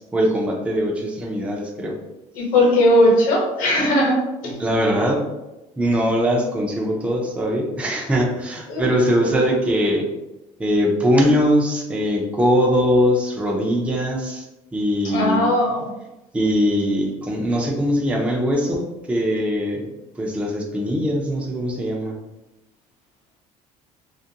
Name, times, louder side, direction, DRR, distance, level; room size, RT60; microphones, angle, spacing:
voice 1, 0.0-1.9 4.6-5.2 5.8-10.1 10.6-14.4 14.7-15.5 16.3-19.8 20.2-22.1, equal, 10° right, -1 dB, 0.4 m, -21 dB
voice 2, 2.3-4.6 8.7-8.8 15.0-15.9, left 1 dB, 80° left, -3 dB, 0.9 m, -18 dB
2.4 x 2.1 x 2.7 m, 0.97 s
cardioid pair, 135°, 14 cm